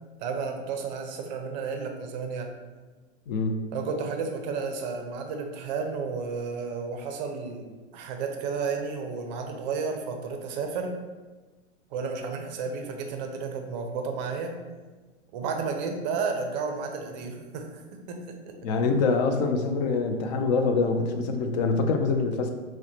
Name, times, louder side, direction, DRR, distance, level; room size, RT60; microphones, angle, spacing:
voice 1, 0.2-2.5 3.7-11.0 11.9-14.6 15.3-18.6, right 5 dB, 35° right, 4 dB, 0.5 m, -32 dB
voice 2, 3.3-3.6 18.6-22.5, left 4 dB, 35° left, 5 dB, 0.4 m, -25 dB
5.6 x 2.2 x 2.7 m, 1.3 s
hypercardioid pair, 125°, 37 cm